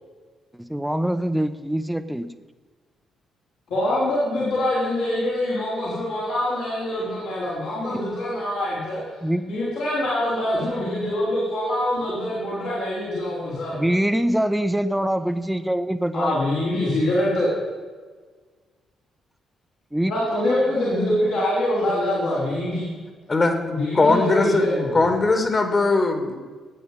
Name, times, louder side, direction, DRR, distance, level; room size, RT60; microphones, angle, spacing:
voice 1, 0.6-2.3 9.2-9.5 13.7-16.3 19.9-20.1, right 1 dB, 5° right, 11 dB, 1.1 m, -24 dB
voice 2, 3.7-9.2 9.5-14.0 16.1-17.5 20.1-22.9 23.6-25.0, left 1 dB, 70° left, -9 dB, 5.0 m, -24 dB
voice 3, 23.9-24.6 24.9-26.4, left 3 dB, 35° left, 5 dB, 2.6 m, -19 dB
17.5 x 9.3 x 5.4 m, 1.5 s
hypercardioid pair, 45°, 0 cm